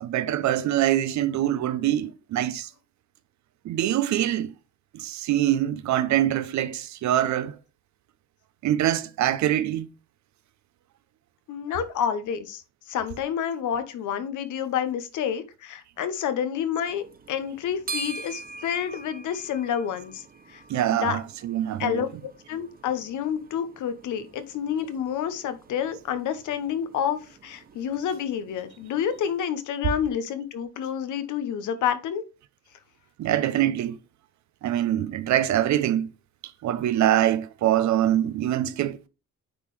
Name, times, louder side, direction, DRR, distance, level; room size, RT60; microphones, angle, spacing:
voice 1, 0.0-2.7 3.6-4.5 4.9-7.6 8.6-9.9 20.7-22.0 33.2-34.0 34.6-36.1 36.6-39.1, right 12 dB, 70° right, 0.6 m, -24 dB
voice 2, 11.5-12.6 12.9-20.2 20.5-20.6 20.9-21.2 21.8-22.1 22.5-32.2, left 8 dB, 80° left, 0.9 m, -29 dB
sound 1, 16.9-29.4, right 4 dB, 30° right, 0.8 m, -44 dB
9.0 x 3.8 x 3.2 m
cardioid pair, 90°, 30 cm